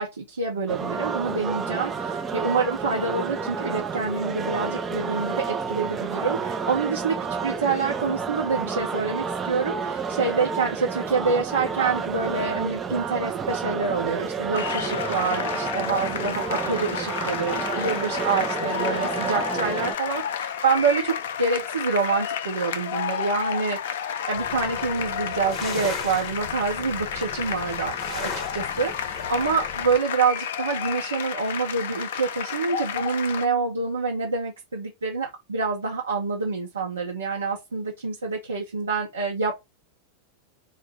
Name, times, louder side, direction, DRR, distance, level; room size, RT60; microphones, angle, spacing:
voice 1, 0.0-7.2 7.4-23.8 24.3-39.6, right 4 dB, 70° right, 0.7 m, -27 dB
sound 1, 0.7-20.0, right 5 dB, 20° right, 0.4 m, -30 dB
sound 2, 14.5-33.5, left 8 dB, 60° left, 0.3 m, -31 dB
sound 3, 24.3-30.0, left 4 dB, 35° left, 0.7 m, -37 dB
3.9 x 2.1 x 3.2 m
figure-of-eight pair, 90°, 0 cm